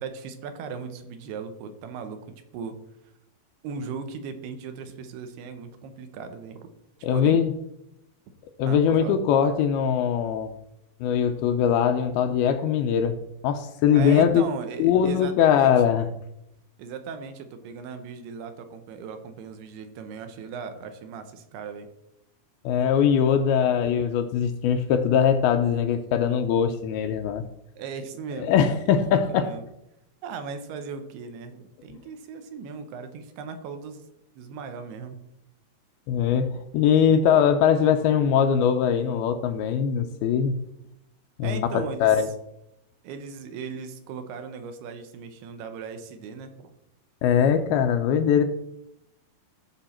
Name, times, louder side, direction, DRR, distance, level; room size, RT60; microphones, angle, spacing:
voice 1, 0.0-2.8 3.6-6.7 7.1-7.4 8.7-9.2 13.9-15.7 16.8-21.9 27.8-28.6 28.8-29.6 30.2-34.0 34.4-35.2 41.4-42.3 43.0-46.7, right 5 dB, 80° right, 8 dB, 2.9 m, -37 dB
voice 2, 7.0-7.5 8.6-10.5 11.0-13.2 13.4-14.4 14.8-16.1 22.7-27.4 28.5-29.5 36.1-40.6 41.4-42.3 47.2-48.4, left 8 dB, 80° left, 7 dB, 2.4 m, -21 dB
14.5 x 6.1 x 4.3 m, 0.85 s
omnidirectional pair, 4.7 m